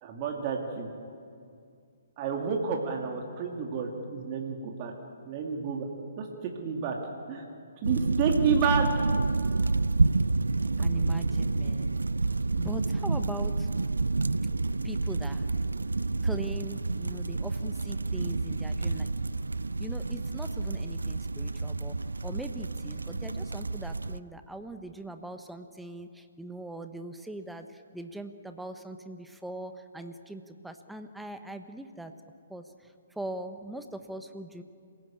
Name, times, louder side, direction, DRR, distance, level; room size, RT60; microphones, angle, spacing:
voice 1, 0.0-0.9 2.2-4.9 5.3-5.9 6.2-7.0 7.3-7.5 7.8-9.1, right 6 dB, 30° right, 1 dB, 2.4 m, -30 dB
sound 1, 7.8-24.2, right 3 dB, 75° right, 0.5 m, -29 dB
voice 2, 10.8-12.0 12.6-13.7 14.8-15.5 16.2-19.1 19.8-21.9 22.2-32.1 32.5-32.6 33.2-34.6, right 2 dB, 5° right, 7 dB, 1.1 m, -41 dB
27.0 x 17.0 x 8.7 m, 2.3 s
figure-of-eight pair, 130°, 0 cm